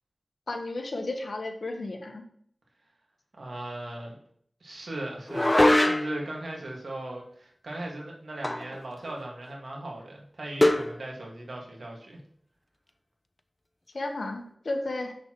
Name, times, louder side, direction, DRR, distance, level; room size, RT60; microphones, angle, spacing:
voice 1, 0.5-2.2 13.9-15.1, left 2 dB, 75° left, 5 dB, 1.0 m, -33 dB
voice 2, 3.4-4.2 4.6-12.2, right 1 dB, 85° right, -1 dB, 1.8 m, -38 dB
sound 1, 5.3-6.3 8.4-8.8 9.1-9.2 10.6-10.9, left 1 dB, 25° left, 0.5 m, -22 dB
7.0 x 6.5 x 3.0 m, 0.64 s
wide cardioid pair, 55°, 0 cm